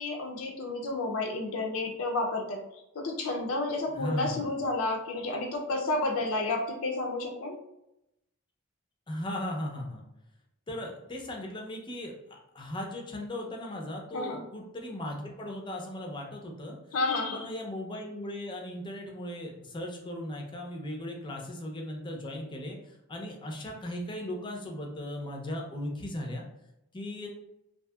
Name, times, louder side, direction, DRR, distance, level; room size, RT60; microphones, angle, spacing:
voice 1, 0.0-7.6 14.1-14.4 16.9-17.5, left 2 dB, 80° left, 2 dB, 0.5 m, -31 dB
voice 2, 4.0-4.5 9.1-10.0 10.7-16.8 17.3-26.5 26.9-27.3, left 1 dB, 20° left, 1 dB, 0.5 m, -37 dB
2.7 x 2.7 x 2.2 m, 0.85 s
head